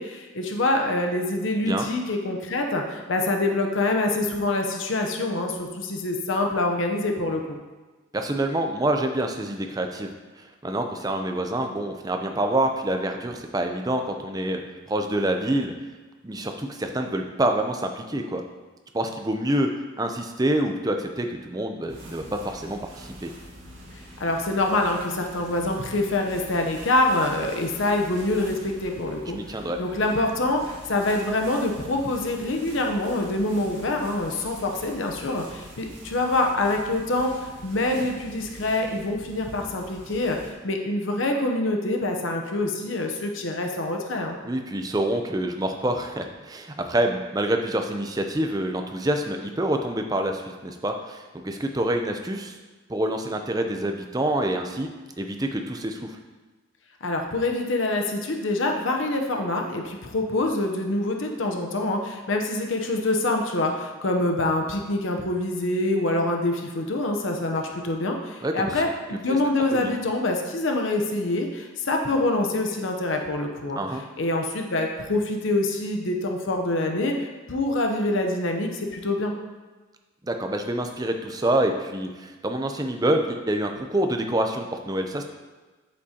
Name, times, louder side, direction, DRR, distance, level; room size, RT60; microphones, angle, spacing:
voice 1, 0.0-7.6 24.2-44.4 57.0-73.8 74.2-79.3, left 2 dB, 65° left, 2 dB, 0.8 m, -25 dB
voice 2, 8.1-10.1 10.4-14.6 14.9-15.7 16.2-18.4 18.9-19.7 20.0-23.3 29.3-29.8 44.4-52.6 52.9-54.9 55.2-56.2 68.4-68.7 69.3-69.4 69.7-70.0 73.8-74.0 80.2-85.2, right 1 dB, 20° right, 5 dB, 0.5 m, -27 dB
sound 1, 21.9-40.5, equal, 60° right, 1.9 m, -44 dB
8.4 x 7.5 x 2.9 m, 1.3 s
head